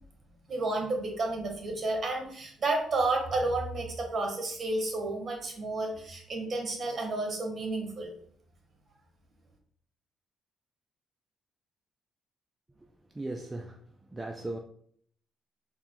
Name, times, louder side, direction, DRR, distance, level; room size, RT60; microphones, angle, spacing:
voice 1, 0.5-8.1, right 2 dB, 40° right, 1.2 m, -31 dB
voice 2, 13.1-13.8 14.1-14.6, right 2 dB, 20° right, 0.3 m, -37 dB
4.3 x 2.2 x 3.8 m
cardioid pair, 90°, 0 cm